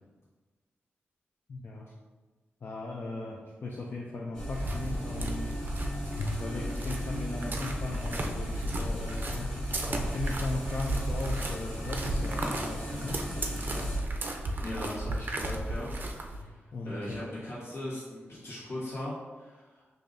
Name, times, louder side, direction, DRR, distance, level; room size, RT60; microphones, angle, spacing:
voice 1, 1.5-1.9 2.6-5.5 6.2-14.0 16.4-17.2, left 2 dB, 55° left, -2 dB, 0.4 m, -38 dB
sound 1, 4.3-14.0, equal, 20° left, 1.4 m, -36 dB
sound 2, 4.5-16.4, right 2 dB, 45° right, 0.4 m, -35 dB
voice 2, 14.6-16.1 16.5-19.8, left 1 dB, 80° left, -8 dB, 1.5 m, -39 dB
4.8 x 2.7 x 2.6 m, 1.3 s
cardioid pair, 85°, 4 cm